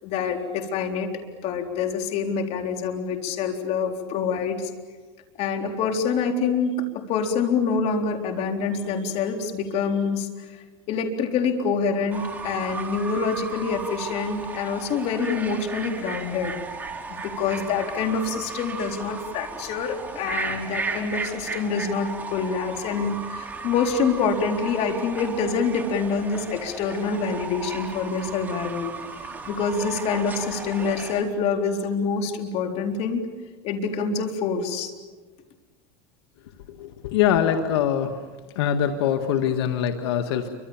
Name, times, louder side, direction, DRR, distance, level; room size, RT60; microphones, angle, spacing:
voice 1, 0.0-4.7 5.4-6.8 7.1-16.6 17.1-28.9 29.2-33.2 33.6-34.9, left 5 dB, 50° left, 4 dB, 4.0 m, -26 dB
Fowl / Bird, 12.1-31.2, right 4 dB, 10° right, 3.6 m, -35 dB
voice 2, 36.8-38.1 38.6-40.5, left 9 dB, 85° left, 6 dB, 1.8 m, -23 dB
29.5 x 25.0 x 7.3 m, 1.3 s
supercardioid pair, 125°, 13 cm